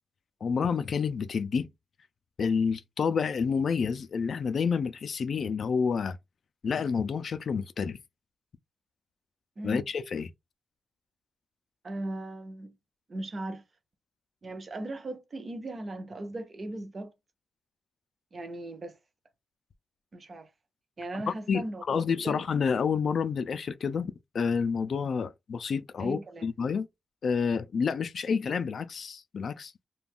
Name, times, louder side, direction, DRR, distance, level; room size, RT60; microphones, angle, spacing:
voice 1, 0.4-1.7 2.4-6.2 6.6-8.0 9.6-10.3 21.3-26.9 27.2-29.7, left 6 dB, 60° left, 0.3 m, -29 dB
voice 2, 11.8-12.8 13.1-13.6 14.4-17.1 18.3-19.0 20.1-20.5 21.0-22.4 26.0-26.5, right 1 dB, 40° right, 0.6 m, -38 dB
2.4 x 2.2 x 3.5 m
wide cardioid pair, 130°, 0 cm